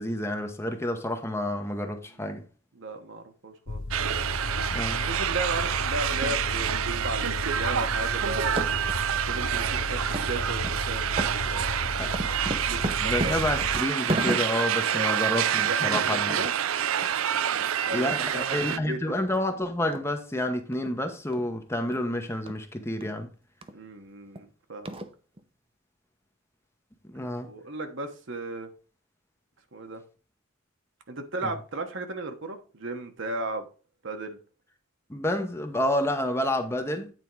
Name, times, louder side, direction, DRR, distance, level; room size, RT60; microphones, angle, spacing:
voice 1, 0.0-2.4 4.7-5.0 12.0-12.1 13.0-16.4 17.9-23.3 27.1-27.5 31.4-31.5 35.1-37.1, left 1 dB, 10° left, 0.9 m, -29 dB
voice 2, 2.7-3.8 5.0-8.9 9.3-11.2 11.4-12.2 12.7-13.5 14.9-15.3 15.6-16.5 17.9-19.1 23.7-25.0 27.4-28.7 29.7-30.0 31.1-33.7 34.0-34.4, right 2 dB, 60° right, 1.1 m, -35 dB
sound 1, 3.7-13.8, left 2 dB, 85° left, 1.0 m, -34 dB
sound 2, 3.9-18.8, right 9 dB, 75° right, 0.5 m, -28 dB
sound 3, 8.4-9.0 9.4-9.5 10.1-10.3 10.6-10.8 11.1-14.7 15.2-15.3 15.5-15.7 15.9-16.1 16.4-16.5 17.0-17.1 17.5-17.7 18.1-18.2 18.7-18.8 19.3-19.4 19.9-20.0 20.7-20.9 21.3-21.5 21.9-22.0 22.5-22.6 23.0-23.1 23.6-23.8 24.4-24.5 24.8-25.4, right 1 dB, 25° right, 0.7 m, -34 dB
9.2 x 4.5 x 4.6 m
head